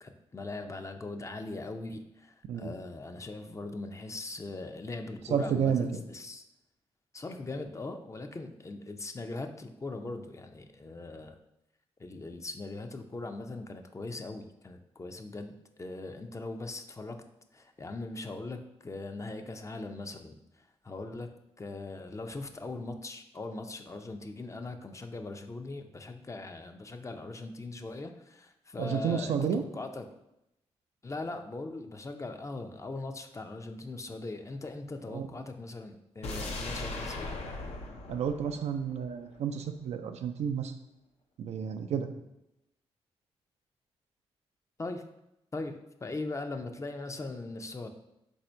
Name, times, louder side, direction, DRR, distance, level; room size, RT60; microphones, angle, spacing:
voice 1, 0.0-6.4 7.1-11.4 12.0-17.2 17.5-21.3 21.6-30.1 31.0-37.3 44.8-45.0 45.5-47.9, left 2 dB, 25° left, 6 dB, 0.5 m, -40 dB
voice 2, 5.3-5.9 28.8-29.6 35.1-35.3 38.1-40.7 41.4-42.1, right 7 dB, 75° right, 7 dB, 0.4 m, -31 dB
sound 1, 36.2-39.4 39.7-39.8, left 2 dB, 75° left, 0.6 m, -39 dB
4.1 x 2.7 x 4.4 m, 0.87 s
cardioid pair, 55°, 11 cm